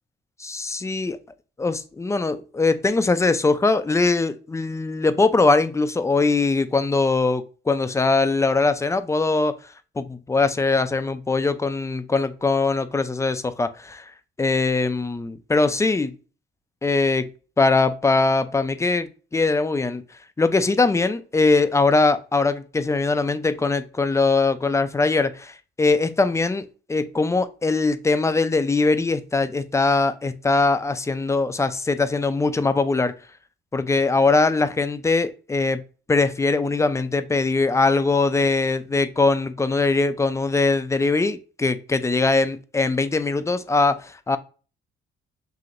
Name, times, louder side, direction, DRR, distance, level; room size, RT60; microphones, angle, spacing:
voice 1, 0.4-1.2 1.6-9.6 10.0-14.1 14.4-16.2 16.8-17.3 17.6-20.0 20.4-33.1 33.7-35.8 36.1-44.4, left 3 dB, 15° left, 0.4 m, -21 dB
5.9 x 2.8 x 2.5 m
cardioid pair, 90°, 20 cm